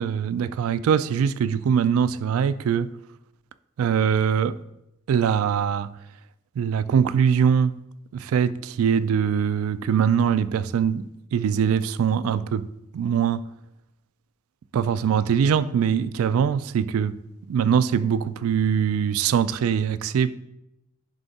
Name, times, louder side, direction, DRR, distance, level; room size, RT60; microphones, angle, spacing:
voice 1, 0.0-2.9 3.8-4.6 5.1-5.9 6.6-7.7 8.1-12.7 12.9-13.4 14.7-17.2 17.5-20.4, right 7 dB, 85° right, 0.3 m, -22 dB
10.5 x 3.6 x 4.1 m
head